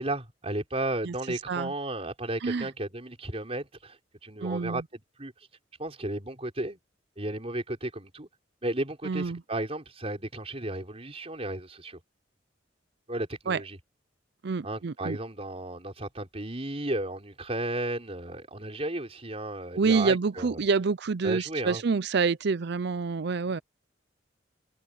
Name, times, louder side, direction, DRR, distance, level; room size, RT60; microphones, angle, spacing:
voice 1, 0.0-4.0 4.2-5.3 5.8-6.8 7.2-8.3 8.6-12.0 13.1-13.8 14.6-20.6 21.2-21.8, right 1 dB, 35° right, 4.9 m, -34 dB
voice 2, 4.4-4.8 9.0-9.4 13.5-13.6 14.4-15.2 19.8-23.6, right 4 dB, 60° right, 0.5 m, -27 dB
head